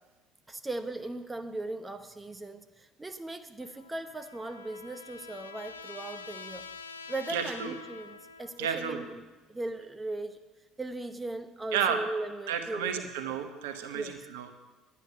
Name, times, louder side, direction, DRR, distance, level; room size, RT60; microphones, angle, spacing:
voice 1, 0.5-6.6 7.1-9.2 9.5-10.4 10.8-13.3 13.9-14.1, right 2 dB, 15° right, 8 dB, 0.8 m, -38 dB
Trumpet, 3.6-8.7, left 5 dB, 85° left, 0.5 m, -46 dB
voice 2, 7.3-7.7 8.6-9.0 11.7-12.0 12.5-14.5, right 8 dB, 70° right, 7 dB, 1.0 m, -32 dB
11.0 x 9.8 x 5.5 m, 1.2 s
figure-of-eight pair, 60°, 0 cm